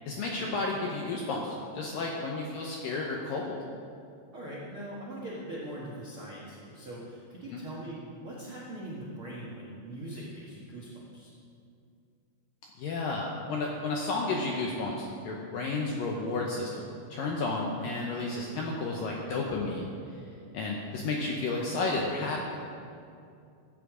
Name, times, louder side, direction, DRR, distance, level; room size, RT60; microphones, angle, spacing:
voice 1, 0.1-3.6 7.5-7.6 12.8-20.2 20.5-22.6, left 3 dB, 75° left, -1 dB, 2.1 m, -32 dB
voice 2, 4.3-11.3, right 1 dB, 65° right, -6 dB, 1.3 m, -41 dB
14.5 x 9.1 x 5.0 m, 2.5 s
omnidirectional pair, 5.1 m